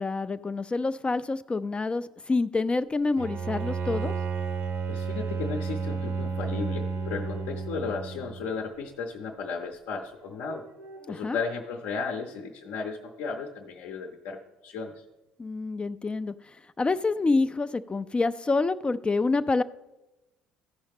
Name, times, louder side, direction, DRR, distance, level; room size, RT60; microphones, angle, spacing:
voice 1, 0.0-4.1 11.1-11.4 15.4-16.3 16.8-19.6, left 3 dB, 25° left, 12 dB, 0.3 m, -27 dB
Bowed string instrument, 3.2-8.5, right 5 dB, 60° right, 0.9 m, -31 dB
voice 2, 4.9-10.6 11.1-14.9, left 5 dB, 70° left, 3 dB, 0.7 m, -35 dB
sound 1, 6.3-9.5 10.2-12.4, right 1 dB, 85° right, 1.6 m, -51 dB
14.5 x 5.4 x 3.5 m, 1.0 s
hypercardioid pair, 55°, 5 cm